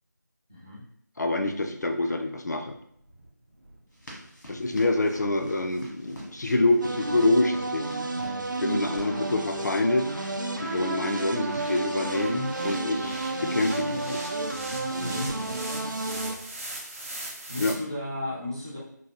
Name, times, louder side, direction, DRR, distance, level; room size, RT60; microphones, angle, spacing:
voice 1, 0.5-0.8 15.0-15.4 17.5-18.8, left 1 dB, 10° right, -8 dB, 0.4 m, -34 dB
voice 2, 1.2-2.8 4.5-8.0 8.6-14.2 17.6-17.8, left 2 dB, 65° left, 5 dB, 0.4 m, -26 dB
sound 1, 2.7-17.7, right 1 dB, 45° right, 0.7 m, -43 dB
sound 2, 3.9-16.2, equal, 80° left, 1.5 m, -48 dB
sound 3, 6.8-16.4, right 2 dB, 85° right, 0.5 m, -32 dB
3.8 x 2.2 x 2.7 m, 0.70 s
figure-of-eight pair, 170°, 10 cm